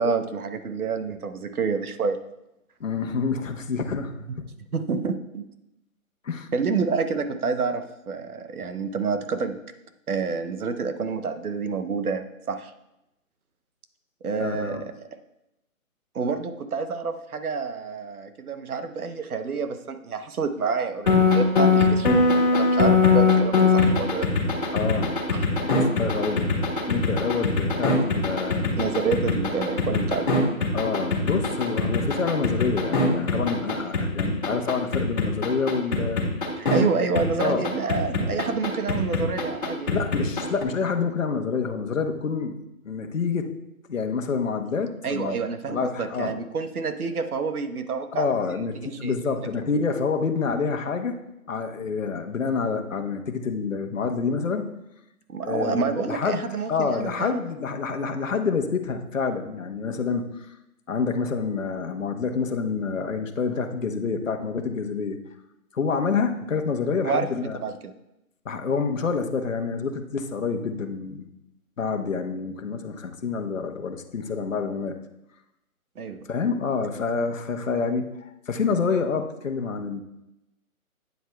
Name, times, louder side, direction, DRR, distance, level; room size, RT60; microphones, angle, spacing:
voice 1, 0.0-2.2 4.3-4.4 4.7-5.5 6.5-9.6 10.1-12.7 14.2-14.8 16.1-24.3 25.3-25.4 28.7-30.4 36.6-40.0 45.0-48.3 49.0-49.1 55.3-57.4 67.0-67.9 76.0-76.2, right 5 dB, 85° right, 8 dB, 1.0 m, -28 dB
voice 2, 2.8-4.1 6.2-6.5 14.4-14.8 24.7-25.2 25.6-26.5 26.9-28.7 30.7-36.2 37.4-37.7 39.9-42.6 42.8-43.5 43.9-45.4 45.7-46.3 48.1-51.1 51.5-54.7 55.4-56.4 56.7-60.5 60.9-65.2 65.7-67.6 68.4-71.3 71.8-75.0 76.3-80.0, left 5 dB, 60° left, 5 dB, 1.1 m, -27 dB
sound 1, 21.1-36.8 37.2-40.6, left 4 dB, 35° left, 1.9 m, -21 dB
9.2 x 7.7 x 2.3 m, 0.87 s
hypercardioid pair, 175°, 43 cm